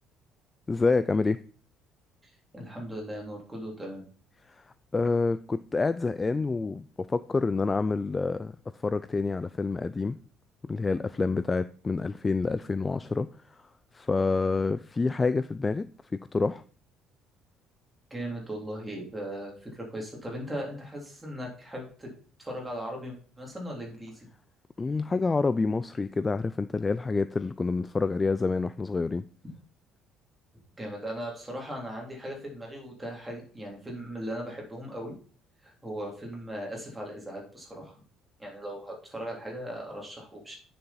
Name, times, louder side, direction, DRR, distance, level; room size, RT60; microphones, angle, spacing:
voice 1, 0.7-1.4 4.5-4.6 4.9-8.6 8.8-10.2 10.7-13.3 13.9-16.6 24.8-29.2, left 3 dB, 15° left, 14 dB, 0.3 m, -27 dB
voice 2, 2.2-4.0 18.1-22.1 22.4-24.2 30.8-35.1 35.6-38.0 38.4-40.6, equal, 10° right, -1 dB, 3.1 m, -38 dB
9.3 x 6.7 x 4.2 m, 0.43 s
cardioid pair, 150°, 0 cm